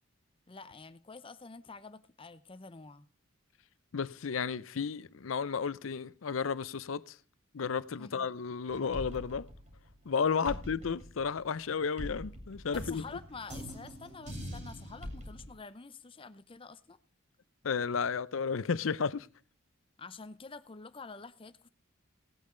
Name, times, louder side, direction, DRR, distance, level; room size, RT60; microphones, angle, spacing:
voice 1, 0.5-3.1 8.0-8.3 10.5-11.1 12.7-17.0 20.0-21.7, left 4 dB, 25° left, 0.6 m, -48 dB
voice 2, 3.9-7.2 7.5-9.5 10.1-13.0 17.6-19.3, left 6 dB, 85° left, 0.6 m, -33 dB
sound 1, 8.7-10.1 10.4-15.5, equal, 35° right, 3.7 m, -43 dB
17.5 x 8.6 x 3.8 m
head